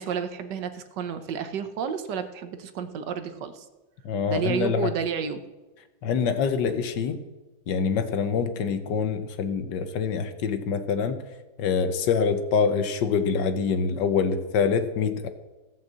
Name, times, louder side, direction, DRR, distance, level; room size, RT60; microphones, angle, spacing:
voice 1, 0.0-3.6 4.3-5.4, right 7 dB, 65° right, 10 dB, 1.3 m, -31 dB
voice 2, 4.0-4.9 6.0-7.2 7.7-11.2 11.6-15.3, left 6 dB, 65° left, 9 dB, 1.4 m, -25 dB
15.0 x 5.6 x 7.5 m, 1.2 s
omnidirectional pair, 2.3 m